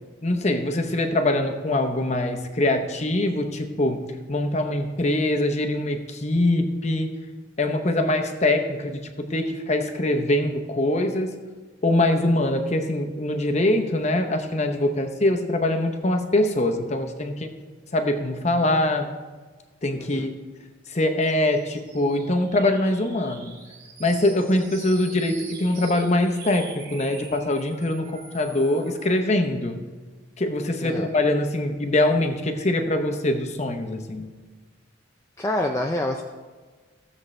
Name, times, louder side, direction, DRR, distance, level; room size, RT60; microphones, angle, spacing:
voice 1, 0.2-7.1 7.6-11.3 11.8-17.5 17.9-19.1 19.8-20.3 20.9-23.5 24.0-29.8 30.4-34.3, left 1 dB, 35° left, 5 dB, 0.8 m, -23 dB
sound 1, 21.2-29.2, right 4 dB, 65° right, 2.4 m, -44 dB
voice 2, 35.4-36.2, left 1 dB, 15° left, 1 dB, 0.4 m, -26 dB
15.5 x 7.4 x 3.2 m, 1.4 s
head